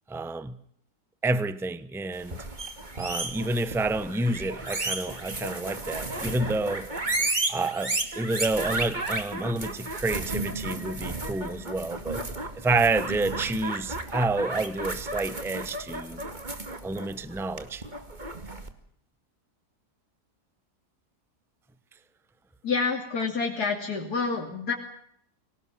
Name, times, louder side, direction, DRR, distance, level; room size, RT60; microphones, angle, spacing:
voice 1, 0.1-0.6 1.2-2.4 2.9-6.9 7.5-12.2 12.5-16.3 16.8-17.8, right 2 dB, ahead, 0.9 m, -29 dB
sound 1, 2.2-18.7, right 2 dB, 30° right, 2.3 m, -33 dB
voice 2, 22.6-24.7, left 4 dB, 75° left, 3.4 m, -28 dB
25.0 x 18.0 x 7.5 m
omnidirectional pair, 1.7 m